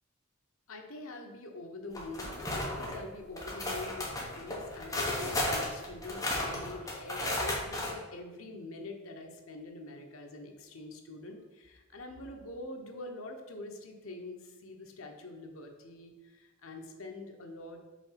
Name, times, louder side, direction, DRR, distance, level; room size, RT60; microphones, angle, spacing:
voice 1, 0.7-17.8, left 2 dB, 75° left, 3 dB, 0.9 m, -45 dB
sound 1, 1.9-3.0 3.4-7.9, left 1 dB, 15° left, 1.2 m, -34 dB
5.2 x 3.8 x 5.7 m, 1.2 s
head